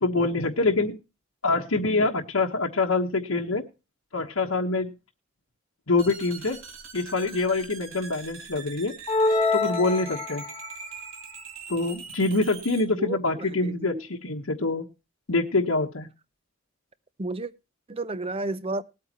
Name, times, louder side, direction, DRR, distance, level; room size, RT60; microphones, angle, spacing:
voice 1, 0.0-0.9 1.4-3.6 4.1-4.9 5.9-6.6 6.9-8.9 9.5-10.4 11.7-14.9 15.3-16.1, left 3 dB, 90° left, 1.2 m, -25 dB
sound 1, 6.0-12.8, right 5 dB, 75° right, 2.5 m, -42 dB
sound 2, 9.1-10.7, left 3 dB, 25° left, 1.4 m, -25 dB
voice 2, 13.0-14.0 17.2-17.5 17.9-18.8, right 2 dB, 30° right, 0.6 m, -32 dB
20.0 x 8.6 x 3.0 m
head